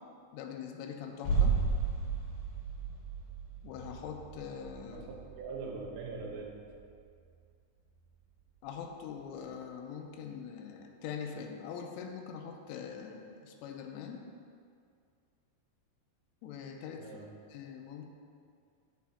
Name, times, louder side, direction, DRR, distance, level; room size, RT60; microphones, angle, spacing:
voice 1, 0.3-1.6 3.6-5.1 8.6-14.2 16.4-17.1 17.5-18.1, left 7 dB, 85° left, 3 dB, 3.1 m, -43 dB
sound 1, 1.2-7.0 7.2-7.3, right 4 dB, 60° left, 2.9 m, -34 dB
voice 2, 4.9-6.7 17.0-17.3, right 4 dB, 90° right, -1 dB, 3.6 m, -42 dB
9.2 x 8.4 x 2.8 m, 2.3 s
omnidirectional pair, 5.6 m